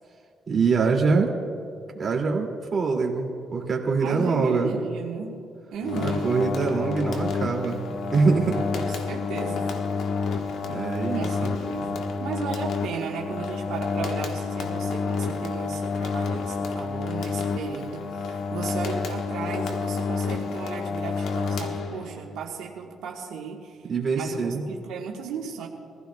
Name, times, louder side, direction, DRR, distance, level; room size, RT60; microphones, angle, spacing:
voice 1, 0.5-1.3 2.0-4.7 6.0-7.8 8.1-8.7 10.7-11.2 23.8-24.6, right 4 dB, 40° right, 0 dB, 2.4 m, -24 dB
voice 2, 4.0-5.3 5.7-6.5 8.8-9.7 11.1-23.9 24.1-25.7, right 6 dB, 90° right, -1 dB, 1.3 m, -35 dB
sound 1, 5.8-22.3, left 4 dB, 75° left, 1.2 m, -29 dB
23.0 x 15.0 x 2.3 m, 2.4 s
cardioid pair, 90°, 0 cm